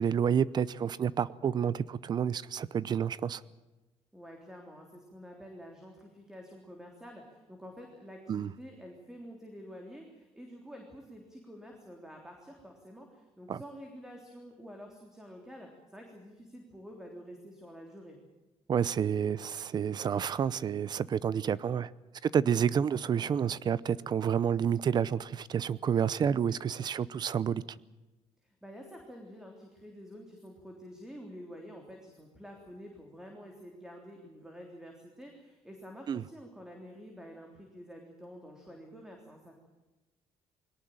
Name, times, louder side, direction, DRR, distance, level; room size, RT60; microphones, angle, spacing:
voice 1, 0.0-3.4 8.3-8.5 13.5-13.6 18.7-21.9 22.2-27.6 36.1-36.2, right 8 dB, 40° right, 20 dB, 0.7 m, -29 dB
voice 2, 4.1-18.2 28.4-39.5, equal, 5° right, 2 dB, 3.5 m, -49 dB
22.0 x 18.5 x 8.9 m, 1.1 s
cardioid pair, 140°, 11 cm